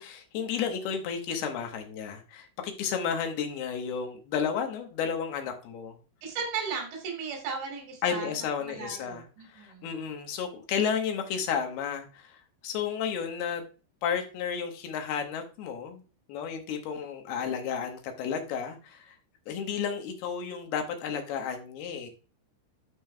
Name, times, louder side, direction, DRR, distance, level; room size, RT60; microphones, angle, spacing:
voice 1, 0.0-6.0 8.0-12.4 12.6-13.6 14.0-16.0 16.3-19.2 19.5-22.1, left 7 dB, 70° left, 4 dB, 2.6 m, -32 dB
voice 2, 6.2-9.9, right 5 dB, 70° right, 1 dB, 4.8 m, -36 dB
12.5 x 5.4 x 2.2 m, 0.34 s
omnidirectional pair, 5.5 m